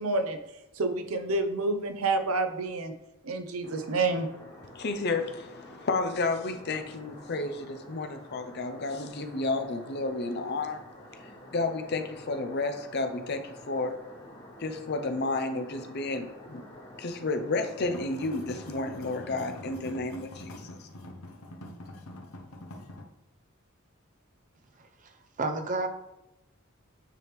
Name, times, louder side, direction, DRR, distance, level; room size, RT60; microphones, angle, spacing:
voice 1, 0.0-2.9 3.2-4.3, right 3 dB, 85° right, 7 dB, 0.7 m, -29 dB
sound 1, 3.6-19.7, equal, 25° left, 1.2 m, -49 dB
voice 2, 4.7-10.8 11.2-14.0 14.6-16.6 17.0-20.9, left 3 dB, 50° left, 7 dB, 0.5 m, -31 dB
sound 2, 17.8-23.0, left 1 dB, 85° left, 0.8 m, -45 dB
voice 3, 24.8-25.9, right 3 dB, 35° right, 6 dB, 0.6 m, -32 dB
9.0 x 3.5 x 3.1 m, 0.95 s
head